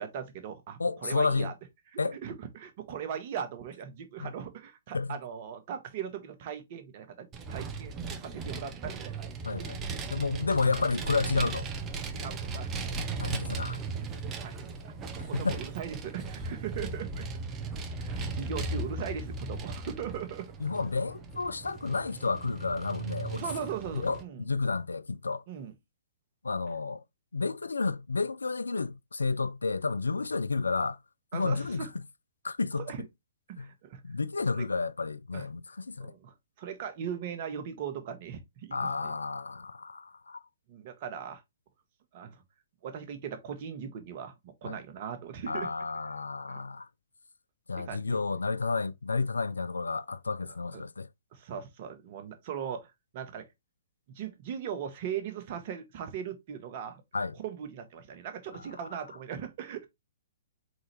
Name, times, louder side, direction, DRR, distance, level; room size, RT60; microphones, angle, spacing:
voice 1, 0.0-1.5 1.9-9.3 9.6-9.7 10.6-10.7 12.1-12.8 14.2-14.9 15.2-17.3 17.6-17.7 18.0-20.5 23.3-24.5 25.5-25.7 31.3-31.9 32.7-33.0 33.5-34.0 34.5-34.7 35.3-35.5 36.0-38.8 39.0-39.1 40.7-41.4 42.1-42.4 42.8-45.7 46.5-46.6 47.8-48.2 50.5-50.6 51.3-53.5 54.1-57.0 57.4-59.9, right 8 dB, 45° right, 1.1 m, -39 dB
voice 2, 0.8-1.5 2.0-2.2 4.2-4.3 4.9-5.1 9.4-9.8 10.1-11.7 13.2-13.8 15.3-15.6 20.6-23.4 24.0-25.4 26.4-27.0 27.3-31.0 31.3-31.9 32.4-33.1 33.6-33.7 34.0-36.1 38.7-40.4 44.6-44.8 45.5-46.9 47.7-51.1 57.1-57.3 58.5-58.6, left 4 dB, 85° left, 0.3 m, -31 dB
Vehicle, 7.3-24.2, right 3 dB, 25° right, 0.8 m, -37 dB
3.9 x 3.8 x 3.1 m
figure-of-eight pair, 120°, 0 cm